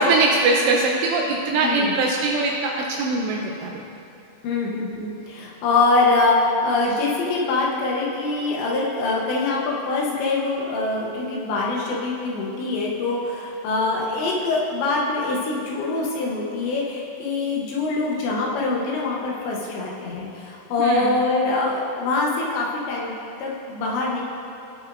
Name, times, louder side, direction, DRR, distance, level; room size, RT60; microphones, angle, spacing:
voice 1, 0.0-3.8 20.8-21.2, right 3 dB, 80° right, -1 dB, 2.5 m, -21 dB
voice 2, 1.6-1.9 4.4-23.1 23.4-24.2, left 3 dB, 75° left, -3 dB, 3.1 m, -24 dB
17.0 x 6.2 x 2.5 m, 2.8 s
omnidirectional pair, 5.4 m